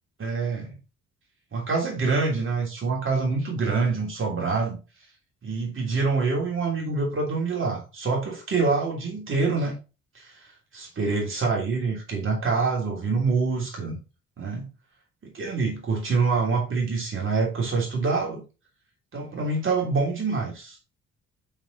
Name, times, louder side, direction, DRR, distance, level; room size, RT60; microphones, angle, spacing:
voice 1, 0.2-0.8 1.5-4.8 5.4-9.7 10.1-14.0 14.4-14.7 15.2-18.4 19.1-20.8, right 4 dB, 40° right, -1 dB, 3.1 m, -26 dB
6.0 x 5.6 x 4.0 m, 0.31 s
cardioid pair, 90°, 30 cm